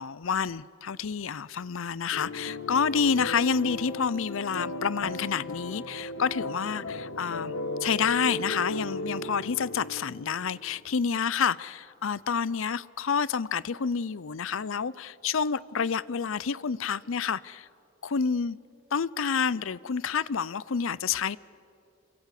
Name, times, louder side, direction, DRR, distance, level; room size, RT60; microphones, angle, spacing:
voice 1, 0.0-7.5 7.8-17.7 18.0-18.6 18.9-21.4, left 6 dB, 65° left, 0.6 m, -28 dB
sound 1, 2.1-10.8, left 2 dB, 80° left, 1.7 m, -36 dB
28.0 x 24.0 x 8.4 m
head